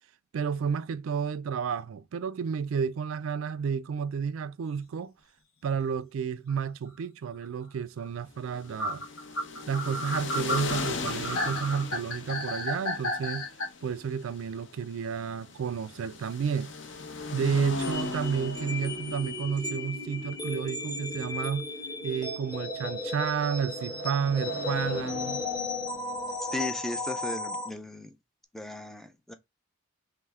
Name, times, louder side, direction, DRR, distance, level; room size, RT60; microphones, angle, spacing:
voice 1, 0.3-5.1 5.6-9.1 9.7-13.5 13.8-16.7 17.3-21.7 22.0-25.4, right 6 dB, 80° right, 0.3 m, -31 dB
sound 1, 6.5-6.6 8.0-8.1 8.8-13.7, left 1 dB, 85° left, 1.1 m, -32 dB
sound 2, 8.5-26.4, left 3 dB, 60° left, 0.7 m, -40 dB
sound 3, 17.8-27.7, left 2 dB, 20° left, 1.0 m, -35 dB
voice 2, 26.4-28.1 28.5-29.3, left 1 dB, ahead, 0.3 m, -36 dB
3.3 x 3.0 x 3.5 m
head